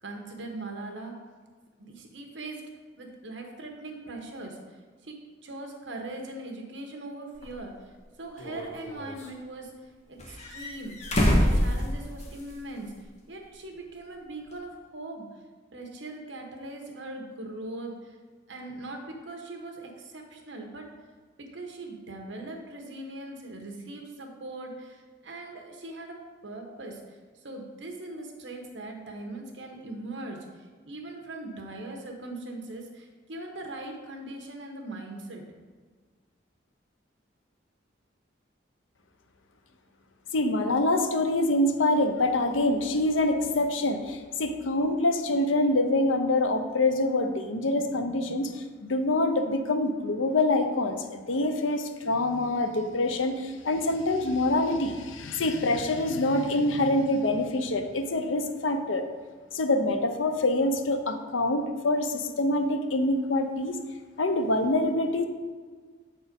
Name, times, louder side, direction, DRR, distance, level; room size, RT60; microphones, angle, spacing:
voice 1, 0.0-1.2 1.8-2.6 3.0-4.8 5.0-5.2 5.4-7.8 8.2-11.0 11.3-15.3 15.7-18.2 18.5-20.9 21.4-35.4 47.6-48.3, right 2 dB, 65° right, 2 dB, 1.2 m, -40 dB
sound 1, 7.4-7.5 8.4-9.3 10.2-12.5 12.8-12.9 14.5-14.6, equal, 40° left, 1.2 m, -26 dB
voice 2, 40.3-48.5 48.8-59.0 59.5-63.8 64.2-65.2, left 2 dB, 85° left, 7 dB, 0.7 m, -25 dB
7.5 x 4.3 x 5.3 m, 1.5 s
head